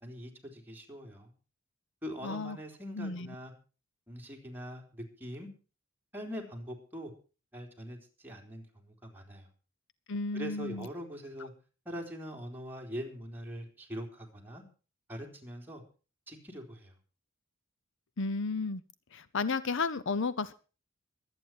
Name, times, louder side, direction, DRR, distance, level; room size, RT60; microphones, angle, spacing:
voice 1, 0.0-1.3 2.0-3.5 4.1-5.5 6.1-7.1 7.5-9.5 10.3-11.5 11.9-14.6 15.1-15.8 16.3-16.9, equal, 10° right, 3.8 m, -43 dB
voice 2, 2.2-2.6 3.0-3.3 10.1-10.9 18.2-18.8 19.1-20.5, left 4 dB, 65° left, 0.8 m, -33 dB
23.5 x 9.2 x 4.6 m
head